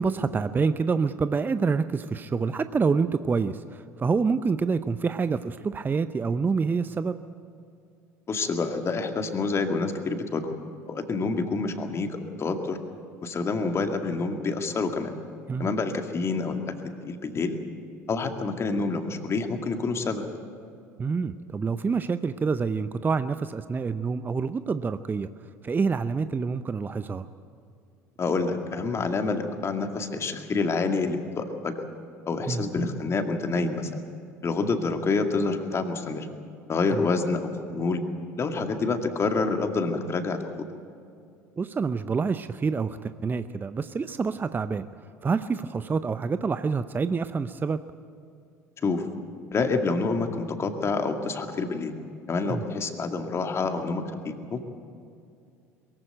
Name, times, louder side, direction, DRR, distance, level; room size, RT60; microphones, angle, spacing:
voice 1, 0.0-7.2 15.5-15.7 21.0-25.3 25.6-27.3 32.5-32.6 36.9-37.1 41.6-44.9 45.2-47.8 52.5-52.6, right 5 dB, 20° right, 12 dB, 0.6 m, -27 dB
voice 2, 8.3-10.5 10.9-12.8 13.2-15.1 15.6-16.6 17.0-17.6 18.1-20.2 28.2-31.8 32.3-33.9 34.4-36.3 36.7-38.0 38.4-40.7 48.8-49.1 49.5-52.0 52.3-54.6, left 4 dB, 30° left, 5 dB, 2.2 m, -27 dB
22.5 x 15.0 x 9.1 m, 2.5 s
figure-of-eight pair, 65°, 9 cm